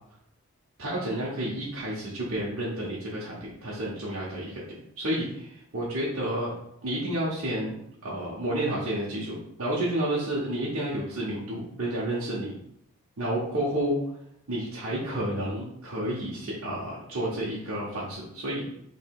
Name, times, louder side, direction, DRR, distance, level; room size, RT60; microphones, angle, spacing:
voice 1, 0.8-4.6 5.0-6.5 6.8-7.8 8.0-12.5 13.2-14.0 14.5-18.7, right 1 dB, 75° right, -6 dB, 0.9 m, -30 dB
3.1 x 3.1 x 4.6 m, 0.76 s
head